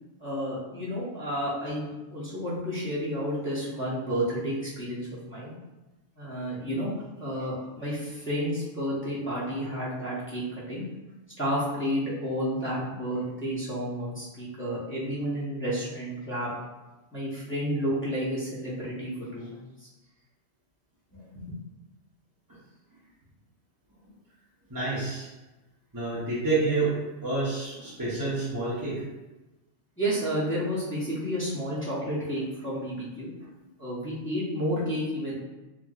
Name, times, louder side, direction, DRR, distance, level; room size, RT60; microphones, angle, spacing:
voice 1, 0.2-5.5 6.2-6.9 7.2-10.4 10.7-10.8 11.4-16.5 17.1-19.9 21.1-21.6 30.0-33.3 33.8-35.3, equal, 10° left, -10 dB, 0.7 m, -31 dB
voice 2, 24.7-25.3 25.9-29.0, right 3 dB, 25° right, -9 dB, 0.5 m, -28 dB
3.0 x 2.8 x 2.3 m, 1.1 s
omnidirectional pair, 1.2 m